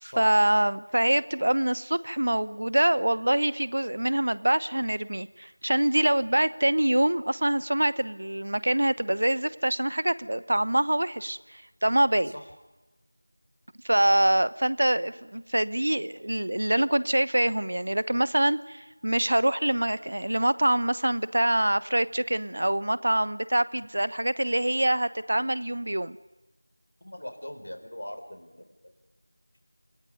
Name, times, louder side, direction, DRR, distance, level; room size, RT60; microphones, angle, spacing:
voice 1, 0.0-12.3 13.8-26.2, right 1 dB, 55° right, 17 dB, 1.0 m, -25 dB
voice 2, 27.0-28.9, equal, 80° left, 5 dB, 4.8 m, -41 dB
29.0 x 19.0 x 9.5 m, 1.1 s
figure-of-eight pair, 175°, 0 cm